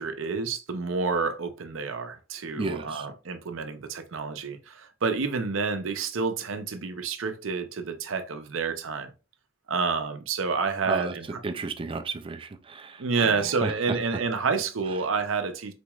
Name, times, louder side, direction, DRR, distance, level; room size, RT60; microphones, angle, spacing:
voice 1, 0.0-9.1 9.7-11.3 13.0-15.7, right 4 dB, 75° right, 0.6 m, -29 dB
voice 2, 2.6-3.1 10.8-13.7, right 4 dB, 25° right, 0.3 m, -33 dB
4.3 x 3.0 x 2.3 m
head